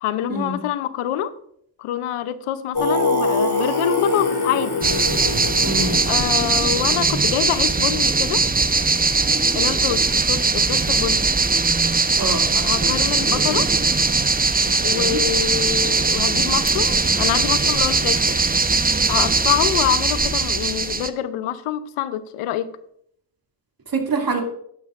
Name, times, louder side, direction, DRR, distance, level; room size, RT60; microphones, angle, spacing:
voice 1, 0.0-1.4 1.8-4.9 6.1-8.5 9.5-11.3 12.6-13.7 14.8-18.4 19.1-22.7, left 11 dB, 85° left, 0.7 m, -25 dB
Singing, 2.7-7.5, left 2 dB, 50° left, 2.3 m, -24 dB
sound 1, 4.8-21.1, right 4 dB, 20° right, 0.7 m, -20 dB
voice 2, 5.6-6.0 12.2-13.0 14.6-15.2 23.9-24.4, right 3 dB, 45° right, 2.4 m, -26 dB
11.0 x 10.5 x 2.5 m
supercardioid pair, 45°, 50 cm